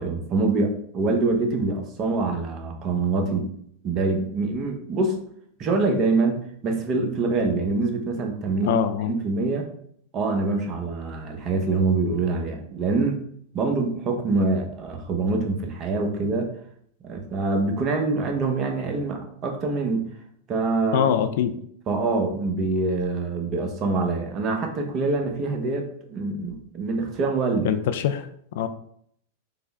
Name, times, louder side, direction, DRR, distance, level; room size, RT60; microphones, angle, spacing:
voice 1, 0.0-3.5 3.8-5.2 5.6-8.8 9.0-9.7 10.1-13.2 13.5-16.5 17.0-20.1 20.5-21.1 21.9-27.7, right 3 dB, 35° right, 4 dB, 0.8 m, -25 dB
voice 2, 8.6-9.1 20.9-21.6 27.6-28.3 28.5-28.7, left 9 dB, 65° left, 10 dB, 0.3 m, -23 dB
3.7 x 2.1 x 3.4 m, 0.66 s
hypercardioid pair, 105°, 0 cm